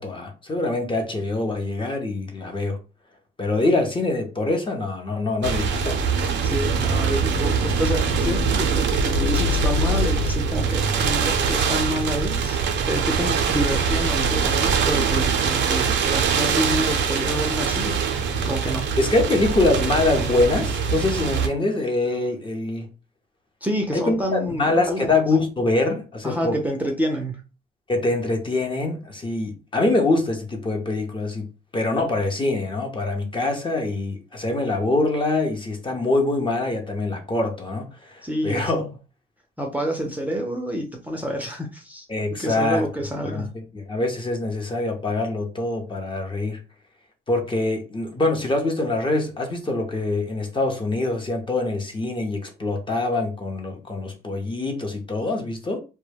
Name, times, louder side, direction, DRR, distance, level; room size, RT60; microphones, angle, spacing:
voice 1, 0.0-2.8 3.4-6.0 19.0-22.9 23.9-26.6 27.9-31.5 31.7-38.8 42.1-42.9 43.2-43.5 43.7-46.6 47.3-55.8, left 2 dB, 25° left, 0.7 m, -24 dB
sound 1, 5.4-21.5, right 5 dB, 65° right, 0.5 m, -23 dB
voice 2, 6.4-12.6 12.9-18.0 18.5-18.9 23.6-25.1 26.2-27.4 38.2-38.9 39.6-42.1 42.4-43.6, equal, 10° right, 0.6 m, -28 dB
2.2 x 2.1 x 3.3 m
cardioid pair, 90°, 20 cm